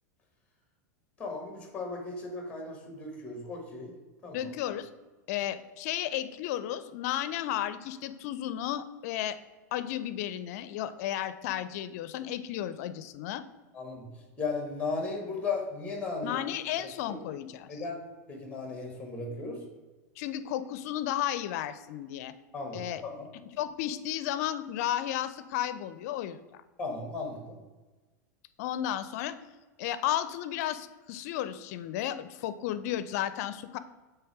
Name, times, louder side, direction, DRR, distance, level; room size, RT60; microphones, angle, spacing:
voice 1, 1.2-3.9 4.2-4.5 13.7-14.1 14.4-16.4 17.1-17.2 17.7-19.6 22.5-23.2 26.8-27.6, left 3 dB, 15° left, 2 dB, 1.5 m, -36 dB
voice 2, 4.3-4.9 5.3-9.4 9.7-13.4 16.2-17.8 20.2-22.3 22.7-23.0 23.6-26.6 28.6-29.4 29.8-33.8, left 12 dB, 65° left, 13 dB, 0.5 m, -33 dB
7.9 x 3.4 x 4.7 m, 1.2 s
supercardioid pair, 125°, 9 cm